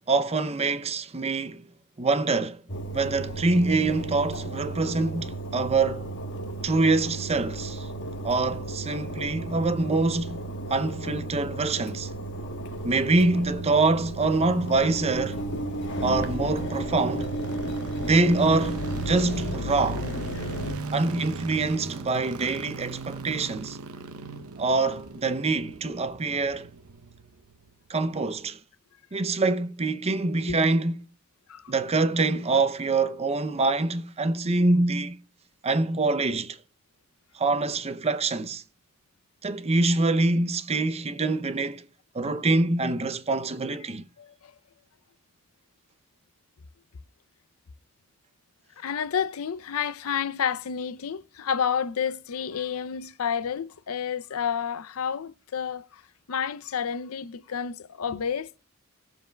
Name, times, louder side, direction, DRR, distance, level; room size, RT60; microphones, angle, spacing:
voice 1, 0.1-1.7 2.0-2.6 2.9-6.1 6.6-7.9 8.2-10.4 10.7-12.1 12.8-15.4 16.0-17.3 18.0-20.1 20.9-23.8 24.6-26.7 27.9-28.6 29.1-30.9 31.7-35.2 35.6-36.6 37.3-38.6 39.4-41.8 42.1-44.0, right 3 dB, 30° right, 0.6 m, -25 dB
Engine, 2.7-20.8, right 1 dB, 60° left, 1.4 m, -33 dB
sound 1, 12.5-27.7 28.0-28.1, right 4 dB, 85° right, 0.8 m, -39 dB
voice 2, 44.2-44.5 48.8-56.0 56.3-58.6, left 7 dB, 75° left, 0.5 m, -30 dB
18.0 x 7.2 x 2.2 m
head